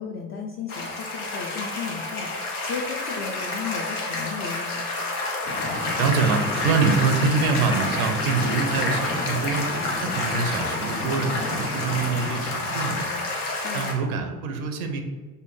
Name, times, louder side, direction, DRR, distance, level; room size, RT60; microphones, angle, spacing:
voice 1, 0.0-4.8 13.6-13.9, left 5 dB, 30° left, 0 dB, 0.4 m, -34 dB
sound 1, 0.7-13.9, left 2 dB, 85° left, 0.6 m, -29 dB
sound 2, 5.4-12.4, left 2 dB, 55° left, 0.8 m, -34 dB
voice 2, 6.0-13.2 13.7-15.0, right 4 dB, 75° right, 4 dB, 0.6 m, -25 dB
5.1 x 2.1 x 3.0 m, 1.4 s
figure-of-eight pair, 50°, 44 cm